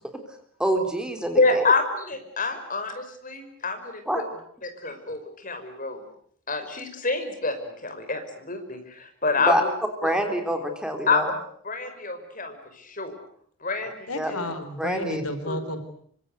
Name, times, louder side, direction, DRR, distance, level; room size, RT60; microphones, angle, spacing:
voice 1, 0.6-1.7 4.1-4.2 9.4-9.6 10.0-11.3 14.1-14.3 14.8-15.2, right 1 dB, 5° right, 5 dB, 3.5 m, -26 dB
voice 2, 1.4-4.2 4.6-6.0 6.5-9.7 10.0-10.1 11.1-11.2 11.6-13.1 13.6-14.5 15.5-15.6, left 3 dB, 35° left, 7 dB, 5.4 m, -27 dB
voice 3, 14.1-15.8, left 1 dB, 85° left, 10 dB, 4.4 m, -32 dB
26.0 x 25.5 x 8.2 m, 0.62 s
head